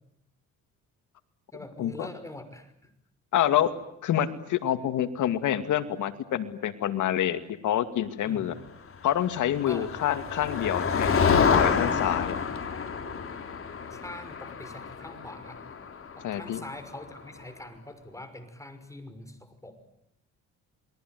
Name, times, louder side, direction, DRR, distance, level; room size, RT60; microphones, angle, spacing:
voice 1, 1.5-2.9 8.2-8.5 9.7-9.9 13.9-15.6 16.2-19.8, left 1 dB, 10° left, 9 dB, 5.9 m, -43 dB
voice 2, 3.3-3.7 4.0-8.5 9.0-12.4 16.2-16.6, left 11 dB, 80° left, 10 dB, 2.5 m, -27 dB
Motor vehicle (road), 9.3-17.0, left 6 dB, 45° left, 3.7 m, -28 dB
28.0 x 22.0 x 9.5 m, 0.79 s
cardioid pair, 90°, 30 cm